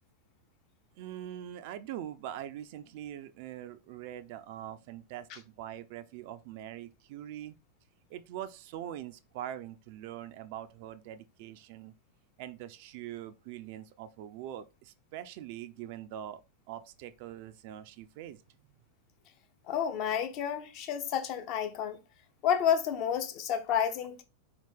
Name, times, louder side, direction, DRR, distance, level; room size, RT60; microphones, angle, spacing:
voice 1, 1.0-7.6 8.1-11.9 12.4-16.4 16.7-18.4, right 11 dB, 50° right, 0.4 m, -43 dB
voice 2, 19.7-22.0 22.4-24.2, left 8 dB, 40° left, 0.7 m, -30 dB
4.4 x 2.9 x 3.4 m
figure-of-eight pair, 90°, 0 cm